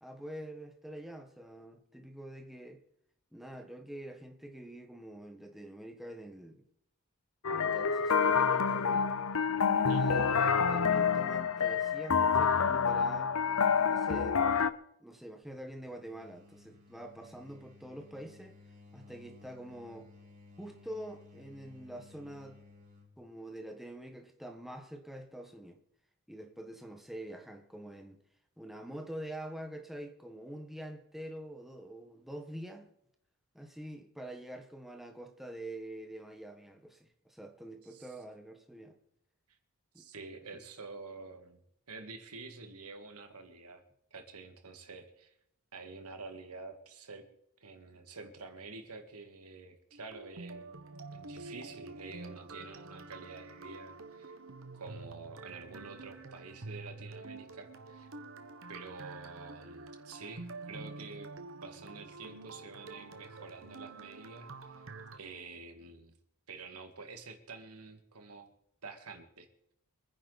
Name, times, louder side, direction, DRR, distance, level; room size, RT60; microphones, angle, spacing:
voice 1, 0.0-2.8 3.3-6.6 7.5-9.1 9.8-13.4 13.9-14.5 15.0-18.6 18.9-20.1 20.6-22.6 23.2-25.8 26.3-28.2 28.6-32.9 33.5-39.0 39.9-40.1 40.5-40.6, right 1 dB, ahead, 1.4 m, -46 dB
sound 1, 7.4-14.7, left 6 dB, 70° left, 0.7 m, -28 dB
sound 2, 15.4-23.2, left 3 dB, 35° right, 4.6 m, -57 dB
voice 2, 40.0-43.8 44.1-45.3 45.7-47.3 47.6-50.8 51.1-54.4 54.7-58.1 58.7-61.3 61.6-64.9 65.1-66.2 66.5-68.5 68.8-69.5, right 4 dB, 90° right, 2.1 m, -48 dB
sound 3, 49.9-65.2, right 3 dB, 60° right, 1.3 m, -48 dB
25.5 x 10.0 x 4.2 m
head